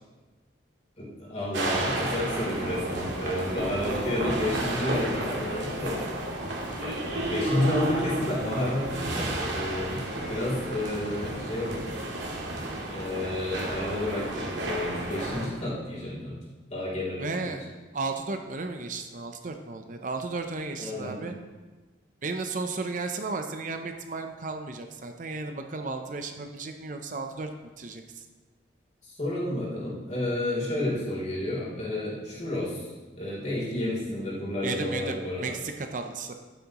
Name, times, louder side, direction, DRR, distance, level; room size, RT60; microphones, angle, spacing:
voice 1, 1.0-6.1 6.8-12.0 12.9-16.3 16.7-17.5 20.8-21.2 29.0-32.9 33.2-35.6, left 1 dB, 40° left, -6 dB, 3.3 m, -31 dB
sound 1, 1.5-15.5, right 1 dB, 80° right, 2.0 m, -32 dB
voice 2, 17.2-17.6 17.9-21.3 22.2-27.5 27.8-28.3 34.6-36.3, right 3 dB, 45° right, 5 dB, 0.6 m, -34 dB
11.0 x 9.1 x 3.0 m, 1.3 s
head